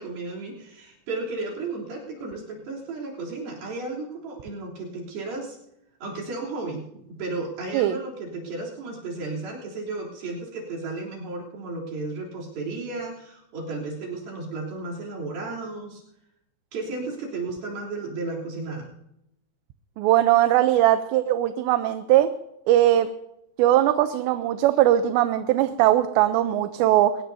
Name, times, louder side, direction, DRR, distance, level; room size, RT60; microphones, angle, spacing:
voice 1, 0.0-5.6 6.0-16.0 16.7-18.9, right 3 dB, 55° right, -4 dB, 5.0 m, -34 dB
voice 2, 20.0-22.3 22.7-23.1 23.6-27.2, right 13 dB, 80° right, 9 dB, 2.9 m, -20 dB
23.5 x 20.0 x 2.8 m, 0.83 s
omnidirectional pair, 5.2 m